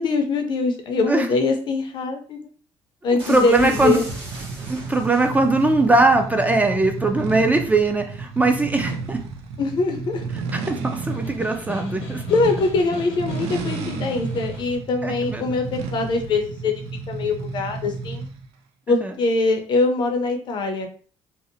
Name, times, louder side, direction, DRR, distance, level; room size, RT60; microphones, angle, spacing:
voice 1, 0.0-2.5 3.0-4.0 9.6-10.3 12.3-16.7 17.1-18.2 18.9-20.9, left 3 dB, 50° left, 4 dB, 0.6 m, -23 dB
voice 2, 3.1-4.0 4.7-9.2 10.5-12.2 15.0-15.5 19.0-19.1, right 2 dB, 15° right, 5 dB, 0.4 m, -20 dB
sound 1, 3.2-5.6, right 2 dB, 65° right, 1.0 m, -37 dB
sound 2, 3.8-18.5, right 4 dB, 85° right, 0.4 m, -32 dB
Snare drum, 10.9-14.8, left 4 dB, 75° left, 0.9 m, -38 dB
2.6 x 2.0 x 2.6 m, 0.41 s
cardioid pair, 105°, 10 cm